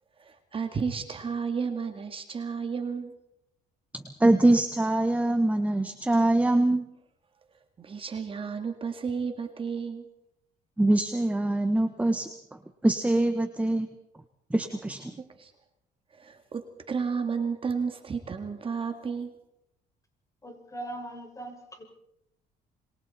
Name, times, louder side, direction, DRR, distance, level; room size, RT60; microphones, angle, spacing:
voice 1, 0.2-3.2 7.8-10.1 15.2-15.5 16.1-19.3, right 5 dB, 30° right, 6 dB, 2.1 m, -32 dB
voice 2, 4.2-6.8 10.8-12.3 12.8-13.9 14.5-15.0, right 1 dB, 10° right, 8 dB, 1.4 m, -23 dB
voice 3, 20.4-21.8, right 1 dB, 20° left, 3 dB, 5.9 m, -40 dB
27.5 x 23.0 x 4.4 m, 0.81 s
cardioid pair, 110°, 17 cm